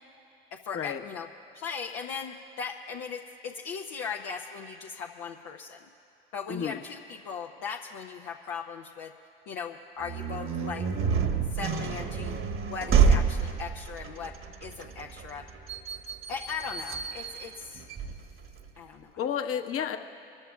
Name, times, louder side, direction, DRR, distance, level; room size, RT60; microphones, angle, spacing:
voice 1, 0.5-1.3 1.5-5.9 6.3-9.1 9.5-10.8 11.5-14.3 14.6-15.4 16.3-17.9 18.8-19.1, left 6 dB, 65° left, 1 dB, 0.9 m, -38 dB
voice 2, 6.5-6.8 19.2-20.0, left 8 dB, 50° left, 5 dB, 1.3 m, -31 dB
sound 1, 10.0-18.7, right 6 dB, 45° right, 1.4 m, -28 dB
26.0 x 14.0 x 2.4 m, 2.9 s
figure-of-eight pair, 50°, 29 cm